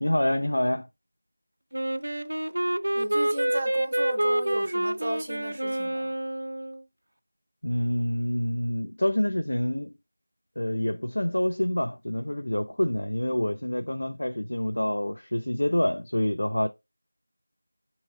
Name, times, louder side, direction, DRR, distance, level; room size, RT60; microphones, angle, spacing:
voice 1, 0.0-0.9 7.6-9.9 10.6-16.7, left 1 dB, 60° left, 0.5 m, -27 dB
Wind instrument woodwind instrument, 1.7-6.8, right 1 dB, 80° right, 0.4 m, -28 dB
voice 2, 2.9-6.1, right 1 dB, 10° right, 0.5 m, -34 dB
4.7 x 3.0 x 3.6 m
figure-of-eight pair, 180°, 0 cm